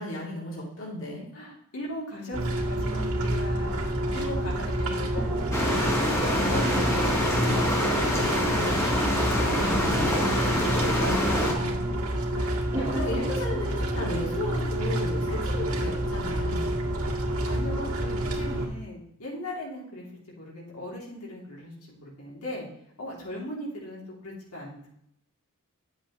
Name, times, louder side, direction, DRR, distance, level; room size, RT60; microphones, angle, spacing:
voice 1, 0.0-1.2 9.3-10.3 10.9-11.9 12.9-16.8, left 1 dB, 60° left, -4 dB, 2.6 m, -35 dB
voice 2, 1.3-3.8 4.1-6.0 6.3-8.9 10.3-11.7 12.3-13.0 13.2-13.3 15.2-15.6 17.2-20.1 20.4-21.7 22.0-22.7 23.0-24.9, equal, 85° left, -4 dB, 2.9 m, -39 dB
sound 1, 2.3-18.7, right 1 dB, 70° right, 1.9 m, -28 dB
sound 2, 5.2-15.4, right 1 dB, 10° right, 1.0 m, -40 dB
sound 3, 5.5-11.5, left 1 dB, 15° left, 1.8 m, -26 dB
10.0 x 7.4 x 3.1 m, 0.74 s
head